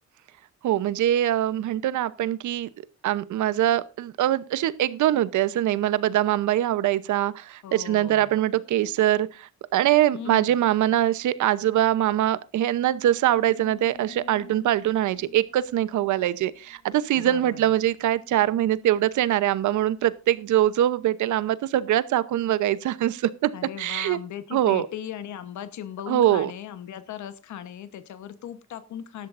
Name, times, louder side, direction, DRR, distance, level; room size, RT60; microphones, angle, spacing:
voice 1, 0.6-2.7 3.0-23.5 23.8-24.2 24.5-24.9 26.1-26.5, right 12 dB, 75° right, 0.9 m, -23 dB
voice 2, 7.6-8.4 10.1-10.6 17.1-17.7 23.5-29.3, left 10 dB, 70° left, 1.1 m, -38 dB
sound 1, 13.3-19.4, left 6 dB, 35° left, 3.5 m, -51 dB
16.5 x 12.5 x 2.6 m
cardioid pair, 90°, 30 cm